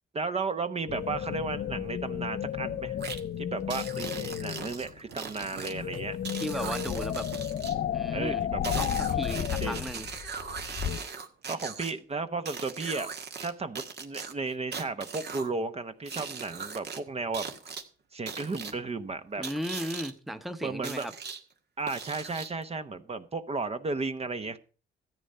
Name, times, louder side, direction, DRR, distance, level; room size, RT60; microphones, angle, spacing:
voice 1, 0.1-3.0 3.4-6.2 8.1-9.8 11.5-13.1 13.4-17.5 18.1-19.4 20.6-21.1 21.8-24.6, right 3 dB, 30° right, 0.9 m, -34 dB
sound 1, 0.9-5.0 5.5-11.0, left 9 dB, 55° left, 0.7 m, -33 dB
sound 2, 3.0-3.2 3.7-5.7 6.2-7.7 8.6-11.9 12.5-13.5 13.8-15.5 16.1-17.0 17.3-17.8 18.3-18.7 19.4-20.1 20.8-21.4 21.9-22.6, right 5 dB, 55° right, 1.8 m, -39 dB
sound 3, 4.1-13.3 13.5-13.6 13.9-14.0 14.3-14.4 15.7-16.0 16.7-17.1, right 7 dB, 75° right, 1.5 m, -52 dB
voice 2, 6.4-7.3 7.9-8.4 8.8-10.1 19.4-21.1, equal, ahead, 0.9 m, -35 dB
14.0 x 8.8 x 5.5 m
cardioid pair, 90°, 20 cm